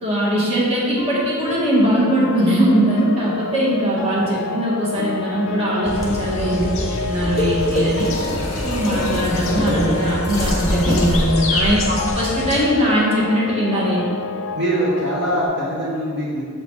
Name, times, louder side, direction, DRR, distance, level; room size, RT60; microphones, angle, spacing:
voice 1, 0.0-6.7 7.0-8.1 8.6-14.0, right 1 dB, 30° right, -6 dB, 1.5 m, -20 dB
sound 1, 1.0-15.5, left 4 dB, 65° left, 0.5 m, -29 dB
sound 2, 5.8-12.6, left 2 dB, 35° left, 0.9 m, -27 dB
sound 3, 5.9-12.1, equal, 15° left, 1.4 m, -26 dB
voice 2, 9.6-9.9 14.5-16.4, right 1 dB, 60° right, -6 dB, 1.2 m, -23 dB
6.9 x 4.1 x 4.5 m, 2.1 s
head